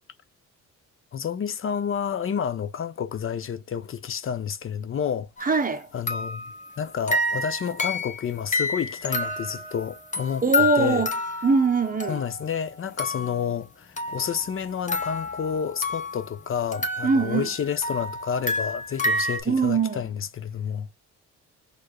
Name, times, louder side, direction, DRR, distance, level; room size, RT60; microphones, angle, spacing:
voice 1, 1.1-5.5 5.9-11.1 12.1-20.9, left 8 dB, 45° left, 0.7 m, -30 dB
sound 1, 5.4-5.6 6.1-12.6 13.0-13.5 14.0-16.3 16.7-19.4, left 2 dB, 25° left, 1.4 m, -29 dB
voice 2, 5.4-5.9 10.4-11.1 11.4-12.2 17.0-17.5 19.5-20.0, right 4 dB, 30° right, 0.9 m, -22 dB
4.4 x 3.3 x 3.1 m
cardioid pair, 90°, 30 cm